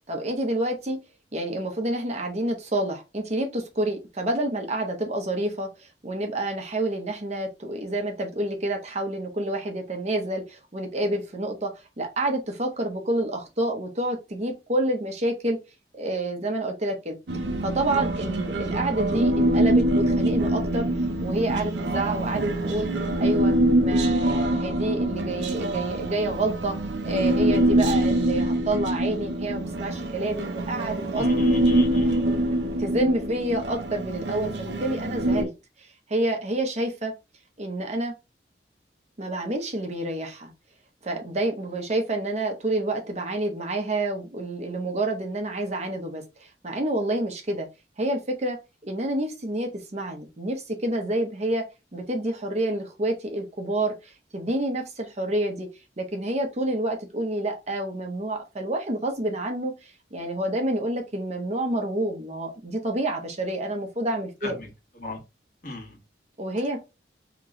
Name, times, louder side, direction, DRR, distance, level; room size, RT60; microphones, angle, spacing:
voice 1, 0.1-1.0 1.3-15.6 15.9-17.2 17.6-20.9 21.2-22.9 23.2-23.5 23.8-31.3 32.5-35.5 35.8-37.1 37.6-38.1 39.2-40.5 41.0-47.7 48.0-48.6 48.8-55.7 56.0-64.6 66.4-66.8, right 1 dB, 40° right, 0.8 m, -28 dB
Human voice, 17.3-35.4, right 1 dB, 80° right, 0.6 m, -24 dB
voice 2, 31.1-32.3 64.4-64.7 65.0-65.2 65.6-66.0, left 2 dB, 50° left, 1.3 m, -37 dB
3.0 x 2.9 x 3.6 m
head